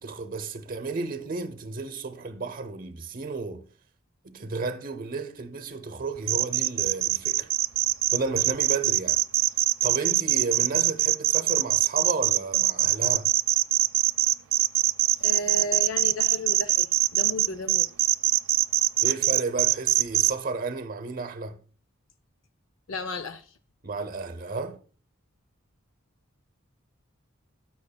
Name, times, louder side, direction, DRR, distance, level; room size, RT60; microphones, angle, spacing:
voice 1, 0.0-3.6 4.2-7.5 8.1-9.2 9.8-13.3 19.0-21.6 23.8-24.8, right 3 dB, 40° right, 0.7 m, -33 dB
sound 1, 6.3-20.3, right 15 dB, 65° right, 0.3 m, -22 dB
voice 2, 15.2-17.9 22.9-23.5, left 2 dB, 65° left, 0.5 m, -34 dB
13.0 x 5.9 x 2.3 m
head